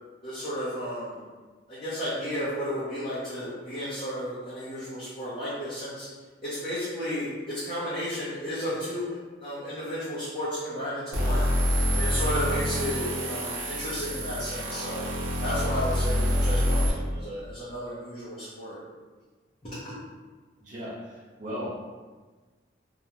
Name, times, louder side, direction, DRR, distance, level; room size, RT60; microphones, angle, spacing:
voice 1, 0.2-1.2 1.7-6.1 6.4-11.5 11.9-15.1 15.4-18.8 19.6-19.9, equal, 30° left, -13 dB, 0.7 m, -33 dB
sound 1, 11.1-16.9, equal, 85° right, 0.7 m, -26 dB
voice 2, 20.6-21.7, equal, 45° right, -11 dB, 0.5 m, -37 dB
2.4 x 2.2 x 2.9 m, 1.3 s
head